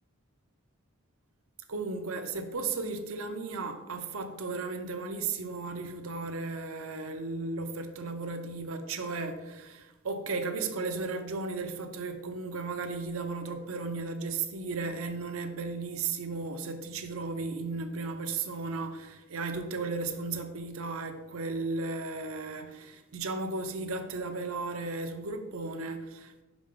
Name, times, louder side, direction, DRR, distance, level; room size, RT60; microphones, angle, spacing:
voice 1, 1.7-26.4, right 3 dB, 70° right, 0.7 m, -35 dB
5.7 x 4.9 x 3.8 m
head